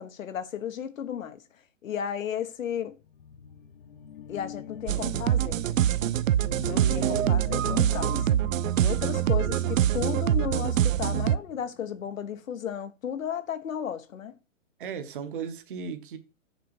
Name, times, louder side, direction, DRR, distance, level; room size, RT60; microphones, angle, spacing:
voice 1, 0.0-1.4 1.8-3.0 4.3-5.6 6.6-8.3 8.8-14.3, left 8 dB, 90° left, 1.2 m, -34 dB
sound 1, 2.9-12.1, left 11 dB, 45° left, 0.6 m, -42 dB
sound 2, 4.9-11.4, right 11 dB, 85° right, 0.6 m, -25 dB
voice 2, 6.5-7.4 9.0-9.1 14.8-16.2, right 6 dB, 40° right, 1.1 m, -36 dB
6.8 x 5.4 x 4.7 m
hypercardioid pair, 170°, 39 cm